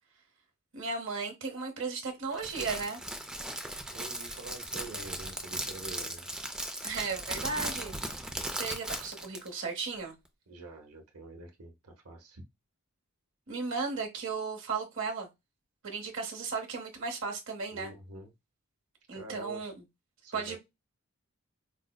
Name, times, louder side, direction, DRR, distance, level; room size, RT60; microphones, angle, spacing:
voice 1, 0.7-3.0 6.8-10.1 13.5-15.3 15.8-17.9 19.1-19.7 20.3-20.6, right 4 dB, 60° right, 0.9 m, -35 dB
Crackle, 2.3-9.5, right 1 dB, 5° right, 0.4 m, -37 dB
voice 2, 3.9-6.3 10.5-12.4 17.7-18.3 19.1-19.6 20.2-20.6, right 2 dB, 90° right, 0.8 m, -46 dB
4.8 x 2.0 x 2.2 m
head